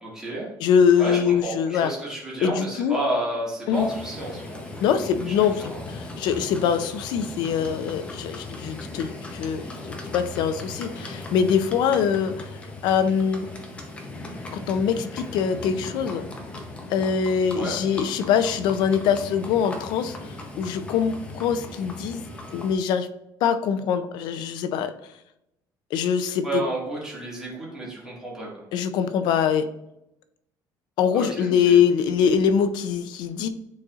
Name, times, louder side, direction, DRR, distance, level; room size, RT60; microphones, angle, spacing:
voice 1, 0.0-0.5 1.0-5.9 17.5-17.8 26.4-28.7 31.1-31.8, right 1 dB, 5° right, -6 dB, 2.2 m, -31 dB
voice 2, 0.6-1.9 2.4-3.0 3.7-3.9 4.8-12.5 12.8-13.5 14.7-16.2 16.9-22.2 22.5-23.1 23.4-24.9 25.9-26.6 28.7-29.7 31.0-33.5, left 7 dB, 70° left, 11 dB, 0.5 m, -23 dB
Livestock farm animals working animals, 3.7-22.7, left 2 dB, 15° left, 0.8 m, -38 dB
9.6 x 4.1 x 2.5 m, 0.85 s
cardioid pair, 170°, 8 cm